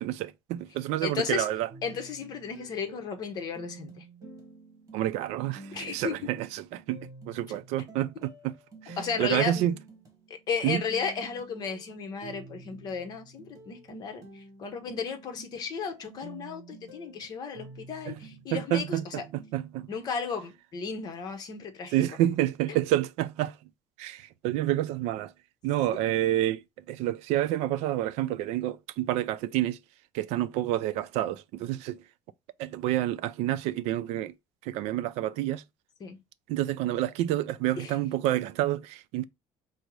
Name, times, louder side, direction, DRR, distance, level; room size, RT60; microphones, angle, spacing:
voice 1, 0.0-1.7 4.9-8.5 8.8-9.7 10.6-10.8 18.1-18.2 18.5-19.9 21.9-23.6 24.0-25.3 25.6-29.8 30.1-32.0 32.6-34.3 34.6-35.6 36.5-39.2, right 13 dB, 85° right, 0.4 m, -29 dB
voice 2, 1.0-1.5 1.8-4.1 5.7-6.2 9.0-9.6 10.3-19.2 19.9-21.9 36.0-36.2 37.8-38.0, left 5 dB, 35° left, 0.8 m, -34 dB
sound 1, 1.7-19.6, right 3 dB, 30° right, 1.3 m, -49 dB
5.2 x 2.0 x 4.7 m
cardioid pair, 170°, 11 cm